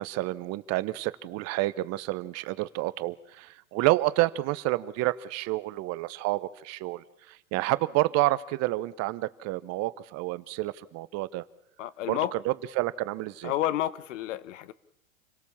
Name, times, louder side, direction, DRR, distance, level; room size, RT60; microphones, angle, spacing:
voice 1, 0.0-11.4 12.1-13.5, right 18 dB, 40° right, 1.0 m, -29 dB
voice 2, 11.8-12.3 13.4-14.7, left 13 dB, 65° left, 1.4 m, -30 dB
28.0 x 18.0 x 7.2 m
hypercardioid pair, 110°, 40 cm